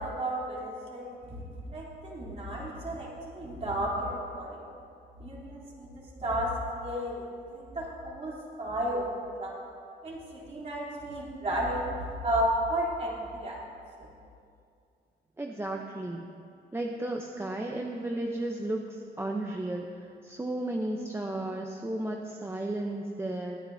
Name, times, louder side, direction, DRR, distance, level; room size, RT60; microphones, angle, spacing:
voice 1, 0.0-4.6 5.2-5.9 6.2-7.2 7.5-8.3 8.6-9.5 10.0-11.8 12.2-13.6 14.0-14.1, right 1 dB, 35° right, -5 dB, 3.2 m, -33 dB
voice 2, 15.4-16.3 16.7-19.9 20.2-23.6, right 1 dB, 15° right, 1 dB, 0.7 m, -34 dB
21.5 x 8.9 x 2.7 m, 2.4 s
cardioid pair, 95°, 18 cm